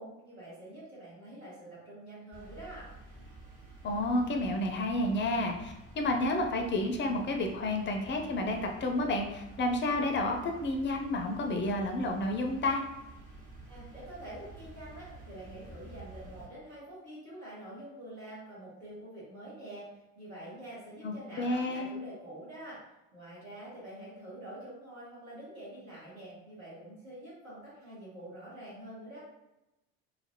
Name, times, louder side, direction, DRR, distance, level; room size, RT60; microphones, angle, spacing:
voice 1, 0.0-2.9 13.7-19.8 20.1-22.8 23.1-29.2, right 1 dB, 90° right, -8 dB, 1.4 m, -46 dB
sound 1, 2.3-16.5, right 2 dB, 55° right, 1.3 m, -50 dB
voice 2, 3.8-12.8 21.0-21.9, left 1 dB, 30° left, 3 dB, 0.4 m, -30 dB
2.8 x 2.5 x 2.6 m, 0.95 s
hypercardioid pair, 65°, 40 cm